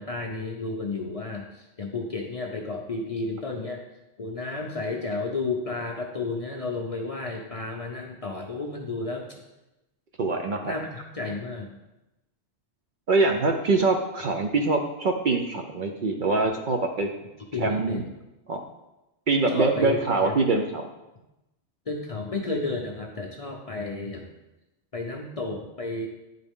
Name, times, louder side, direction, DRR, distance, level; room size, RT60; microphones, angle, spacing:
voice 1, 0.0-3.8 4.2-9.4 10.6-11.8 17.5-18.1 19.5-20.4 21.9-24.3 24.9-26.1, left 3 dB, 40° left, 0 dB, 0.5 m, -32 dB
voice 2, 10.2-10.7 13.1-17.1 17.6-18.0 18.5-18.6 19.3-20.8, right 3 dB, 55° right, 3 dB, 0.6 m, -24 dB
9.6 x 3.8 x 3.5 m, 0.97 s
omnidirectional pair, 1.2 m